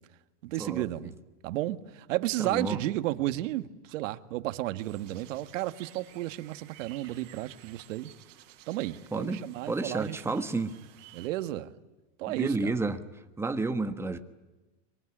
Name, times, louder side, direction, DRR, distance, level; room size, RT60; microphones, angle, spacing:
voice 1, 0.4-1.1 1.4-8.1 8.7-10.3 11.1-11.7 12.2-12.7, right 15 dB, 80° right, 1.7 m, -33 dB
voice 2, 2.4-2.8 9.1-10.7 12.3-13.0 13.4-14.2, right 3 dB, 5° right, 1.3 m, -31 dB
sound 1, 4.8-11.3, right 13 dB, 50° right, 5.3 m, -54 dB
25.0 x 23.5 x 10.0 m
supercardioid pair, 155°, 38 cm